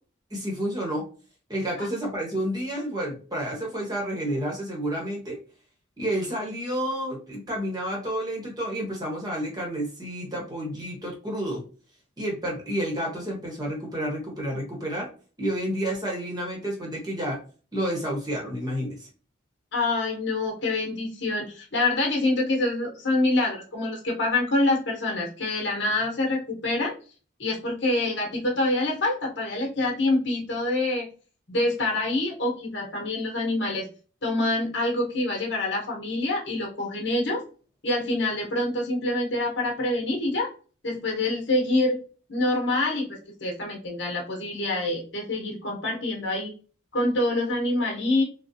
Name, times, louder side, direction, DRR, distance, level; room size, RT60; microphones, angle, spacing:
voice 1, 0.3-1.1 1.5-5.4 6.0-11.6 12.2-15.1 15.4-17.4 17.7-19.1, equal, 20° right, -2 dB, 1.1 m, -30 dB
voice 2, 19.7-26.9 27.4-31.1 31.5-33.9 34.2-37.4 37.8-40.5 40.8-42.0 42.3-46.5 46.9-48.2, left 2 dB, 65° left, -1 dB, 1.2 m, -26 dB
3.8 x 2.3 x 2.7 m, 0.38 s
head